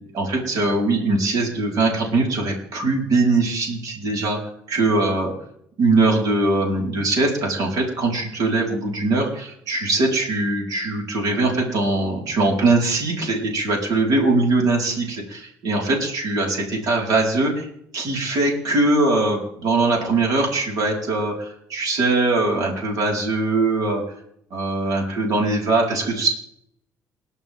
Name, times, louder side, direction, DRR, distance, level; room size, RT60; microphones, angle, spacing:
voice 1, 0.1-4.4 4.7-5.3 5.8-17.7 17.9-24.0 24.5-26.3, right 2 dB, 65° right, -2 dB, 5.0 m, -21 dB
29.5 x 11.5 x 3.8 m, 0.72 s
cardioid pair, 90°, 7 cm